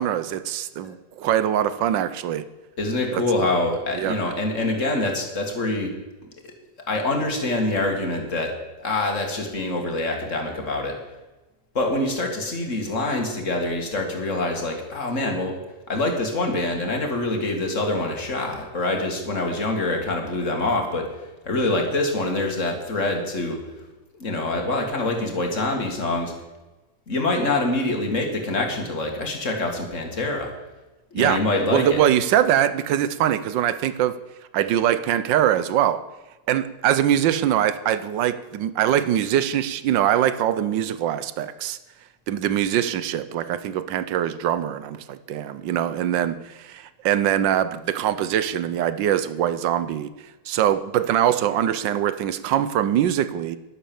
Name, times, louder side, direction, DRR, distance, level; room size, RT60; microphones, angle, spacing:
voice 1, 0.0-2.4 3.1-3.5 3.9-4.2 31.1-31.4 31.7-34.2 34.5-36.0 36.5-41.8 42.3-50.1 50.5-53.6, right 10 dB, 85° right, 13 dB, 1.5 m, -23 dB
voice 2, 2.8-5.9 6.4-6.5 6.9-8.5 8.8-11.0 11.7-15.6 15.9-21.1 21.5-23.6 24.1-26.3 27.1-30.5 31.1-32.0, left 2 dB, 40° left, 2 dB, 2.7 m, -25 dB
12.0 x 11.0 x 7.1 m, 1.1 s
omnidirectional pair, 2.0 m